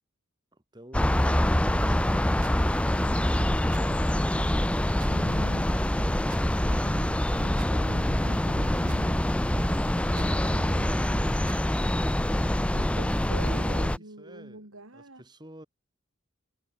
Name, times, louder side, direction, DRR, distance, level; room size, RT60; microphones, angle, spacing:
voice 1, 0.5-2.5 11.0-11.4 13.8-14.7 14.9-15.7, right 1 dB, 20° right, 3.1 m, -50 dB
sound 1, 0.9-14.0, left 1 dB, 5° left, 0.4 m, -25 dB
sound 2, 1.8-2.5 3.0-4.0 4.4-5.1 5.5-7.7 8.1-9.2 9.5-10.3 10.7-12.1, right 2 dB, 40° right, 0.9 m, -39 dB
voice 2, 5.1-5.7 6.7-9.2 10.0-11.0 12.7-15.2, right 1 dB, 85° right, 5.7 m, -44 dB
head